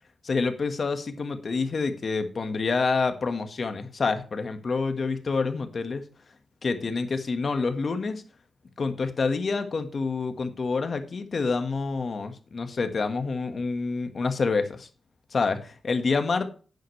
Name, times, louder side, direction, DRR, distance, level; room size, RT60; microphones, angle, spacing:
voice 1, 0.2-6.1 6.6-8.2 8.8-14.9 15.3-16.5, left 4 dB, 50° left, 8 dB, 1.6 m, -27 dB
11.5 x 9.2 x 3.3 m, 0.37 s
wide cardioid pair, 110°, 0 cm